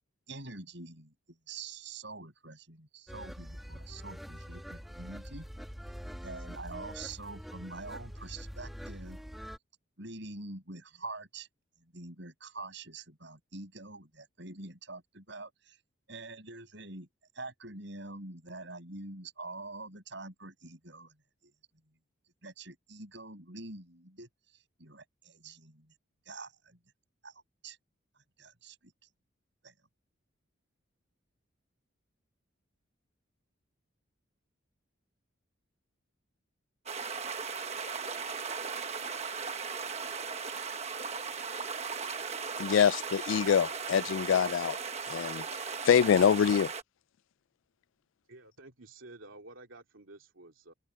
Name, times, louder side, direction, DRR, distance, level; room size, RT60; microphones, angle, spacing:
voice 1, 0.3-5.5 6.2-9.2 10.0-11.5 11.8-15.8 16.1-17.1 17.3-21.2 21.4-21.5 22.4-25.9 26.2-26.8 27.2-27.8 28.4-28.9 29.6-29.7, right 3 dB, 60° right, 7.2 m, -45 dB
sound 1, 3.1-9.6, equal, ahead, 1.4 m, -44 dB
sound 2, 36.9-46.8, right 5 dB, 30° right, 1.2 m, -37 dB
voice 2, 42.6-44.8 45.1-45.4 45.8-46.7, left 8 dB, 75° left, 0.3 m, -25 dB
voice 3, 48.3-50.7, right 2 dB, 85° right, 2.7 m, -51 dB
head